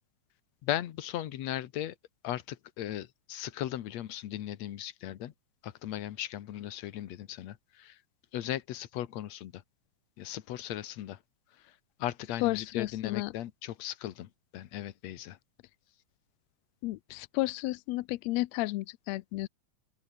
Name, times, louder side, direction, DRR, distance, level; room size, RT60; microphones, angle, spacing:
voice 1, 0.6-2.0 2.2-5.3 5.6-8.0 8.3-9.6 10.2-11.2 11.6-11.7 12.0-15.4, left 12 dB, 65° left, 2.2 m, -37 dB
voice 2, 12.4-13.3 16.8-19.5, left 19 dB, 85° left, 1.5 m, -32 dB
open air
omnidirectional pair, 3.8 m